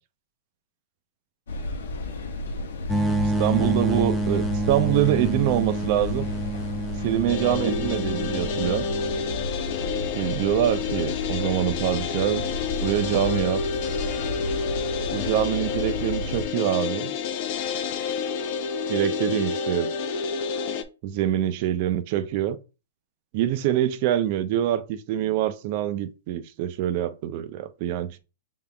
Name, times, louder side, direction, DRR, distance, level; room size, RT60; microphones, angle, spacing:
sound 1, 1.5-16.5, left 2 dB, 80° left, 1.0 m, -33 dB
sound 2, 2.9-9.5, right 2 dB, ahead, 0.6 m, -28 dB
voice 1, 3.4-6.3 7.0-8.9 10.2-12.4 12.8-13.6 15.1-17.1 18.9-19.9 21.0-22.6 23.3-28.2, right 12 dB, 45° right, 0.5 m, -25 dB
sound 3, 7.3-20.8, left 6 dB, 50° left, 0.6 m, -29 dB
5.6 x 3.6 x 2.3 m
hypercardioid pair, 140°, 0 cm